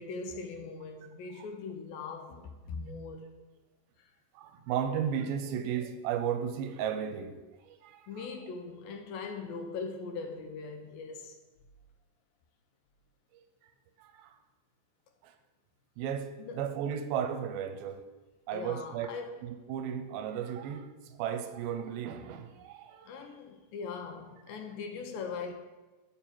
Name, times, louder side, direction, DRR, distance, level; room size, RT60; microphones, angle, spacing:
voice 1, 0.0-3.2 8.1-11.4 16.4-16.7 18.5-19.4 23.1-25.5, left 4 dB, 80° left, 2.4 m, -40 dB
voice 2, 4.4-7.3 7.7-8.0 14.0-14.3 15.2-15.3 16.0-18.0 18.5-19.1 19.7-20.9 21.2-23.1, right 8 dB, 80° right, 2.4 m, -34 dB
8.8 x 7.0 x 4.5 m
omnidirectional pair, 4.3 m